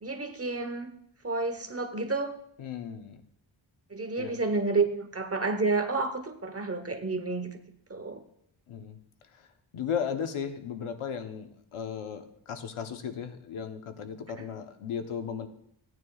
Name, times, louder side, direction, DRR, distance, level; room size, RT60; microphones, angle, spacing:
voice 1, 0.0-0.9 1.2-2.3 3.9-7.5 7.9-8.2 14.4-14.5, right 3 dB, 30° right, 7 dB, 1.0 m, -30 dB
voice 2, 2.6-3.2 4.2-4.4 8.7-9.0 9.3-9.4 9.7-15.5, left 7 dB, 85° left, 7 dB, 1.0 m, -35 dB
16.0 x 9.4 x 2.4 m, 0.70 s
wide cardioid pair, 110°, 48 cm